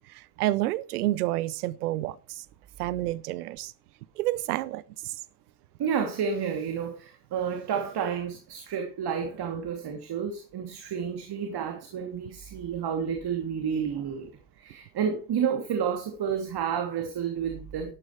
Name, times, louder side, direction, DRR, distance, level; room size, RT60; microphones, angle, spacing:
voice 1, 0.1-2.4 2.8-3.7 4.2-5.2, right 16 dB, 90° right, 0.7 m, -29 dB
voice 2, 5.8-14.3 14.6-17.9, right 7 dB, 60° right, 3.1 m, -30 dB
13.0 x 12.5 x 3.3 m
hypercardioid pair, 55°, 44 cm